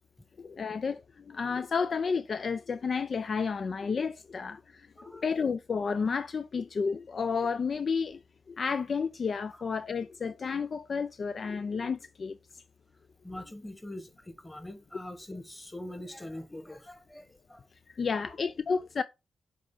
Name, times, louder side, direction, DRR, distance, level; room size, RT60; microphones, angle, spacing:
voice 1, 0.4-4.9 5.2-8.2 8.5-12.4 17.9-19.0, left 5 dB, 55° left, 0.4 m, -31 dB
voice 2, 5.0-5.3 13.2-17.6 18.2-18.4, left 1 dB, 15° left, 1.5 m, -43 dB
7.4 x 3.7 x 3.8 m
cardioid pair, 55°, 0 cm